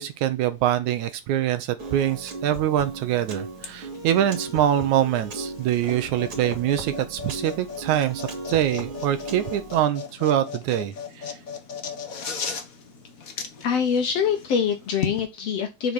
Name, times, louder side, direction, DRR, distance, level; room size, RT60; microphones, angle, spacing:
voice 1, 0.0-8.2 8.5-11.3, right 11 dB, 75° right, 2.0 m, -24 dB
Piano, 1.8-9.8, right 2 dB, 45° right, 2.9 m, -37 dB
sound 1, 3.6-15.2, left 6 dB, 80° left, 0.7 m, -37 dB
voice 2, 13.6-15.9, left 7 dB, 65° left, 1.8 m, -24 dB
6.8 x 5.1 x 5.9 m
omnidirectional pair, 3.8 m